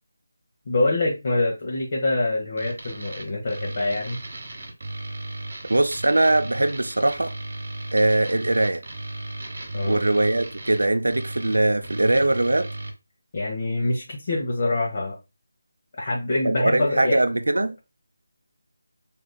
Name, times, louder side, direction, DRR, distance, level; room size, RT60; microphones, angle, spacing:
voice 1, 0.7-4.2 9.7-10.0 13.3-15.2 16.0-17.2, left 2 dB, 45° left, 1.0 m, -25 dB
sound 1, 2.6-12.9, right 2 dB, 50° right, 1.2 m, -35 dB
voice 2, 5.7-7.3 7.9-8.8 9.9-12.7 16.4-17.7, right 2 dB, 80° right, 0.4 m, -21 dB
4.9 x 2.8 x 2.2 m
figure-of-eight pair, 160°, 0 cm